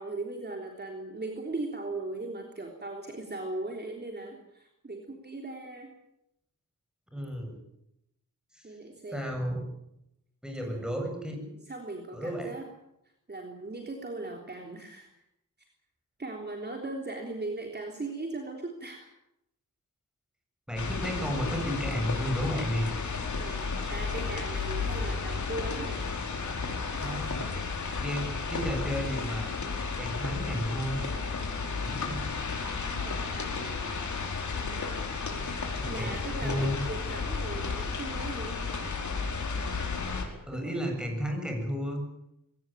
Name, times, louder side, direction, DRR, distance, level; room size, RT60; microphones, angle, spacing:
voice 1, 0.0-5.9 8.6-9.4 10.6-10.8 11.7-12.7 13.3-15.1 16.2-19.1 23.4-26.1 26.9-27.3 27.7-28.0 33.0-33.6 35.4-38.6 40.5-40.8, right 2 dB, 30° right, 2 dB, 3.5 m, -39 dB
voice 2, 7.1-7.6 8.5-8.8 9.1-9.6 10.4-11.5 12.1-12.6 20.7-23.0 27.0-27.5 28.0-29.5 30.0-31.0 31.8-32.2 35.8-36.8 40.5-42.0, equal, ahead, 3 dB, 7.7 m, -33 dB
sound 1, 20.8-40.2, left 4 dB, 60° left, 4.8 m, -33 dB
21.5 x 18.0 x 9.3 m, 0.82 s
wide cardioid pair, 105°, 33 cm